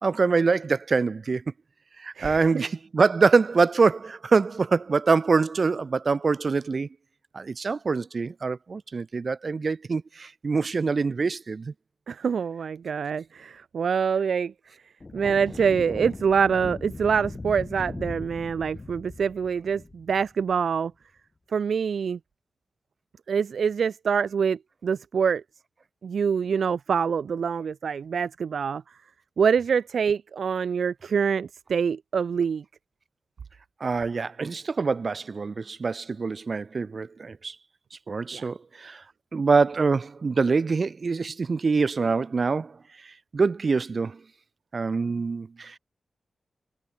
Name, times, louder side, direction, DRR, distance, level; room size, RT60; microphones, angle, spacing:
voice 1, 0.0-1.4 2.0-6.9 7.3-11.7 33.8-37.6 38.1-39.0 39.3-42.8 43.3-44.2 44.7-45.8, right 4 dB, 45° right, 2.3 m, -24 dB
voice 2, 2.2-2.6 12.1-14.5 15.1-20.9 21.5-22.2 23.3-25.4 26.0-28.8 29.4-32.6 38.3-38.4, right 6 dB, 75° right, 0.6 m, -25 dB
sound 1, 15.0-20.6, left 3 dB, 25° left, 4.1 m, -39 dB
wide cardioid pair, 150°, 0 cm